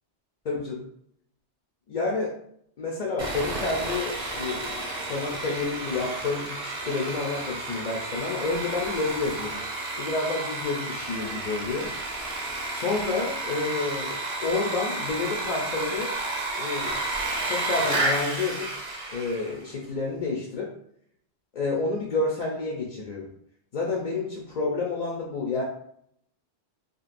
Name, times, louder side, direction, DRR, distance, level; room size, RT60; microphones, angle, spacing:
voice 1, 0.4-0.9 1.9-2.3 2.8-9.6 10.0-11.9 12.7-16.1 16.6-17.0 17.5-18.7 19.1-20.7 21.5-23.3 23.7-25.6, left 3 dB, 55° left, -2 dB, 0.5 m, -29 dB
Sawing, 3.2-19.6, right 2 dB, 25° right, 0.7 m, -31 dB
3.0 x 2.5 x 2.5 m, 0.68 s
omnidirectional pair, 1.1 m